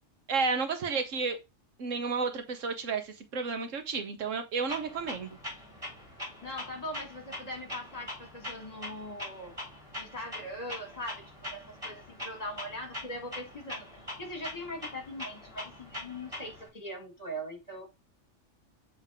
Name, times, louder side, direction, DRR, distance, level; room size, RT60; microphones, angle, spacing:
voice 1, 0.3-1.4 1.8-5.4, right 4 dB, 80° right, 1.4 m, -32 dB
Clock, 4.7-16.7, left 1 dB, 25° right, 3.3 m, -43 dB
voice 2, 6.4-9.5 10.0-13.9 14.2-17.9, equal, 30° left, 2.0 m, -41 dB
7.4 x 3.5 x 3.6 m
omnidirectional pair, 1.3 m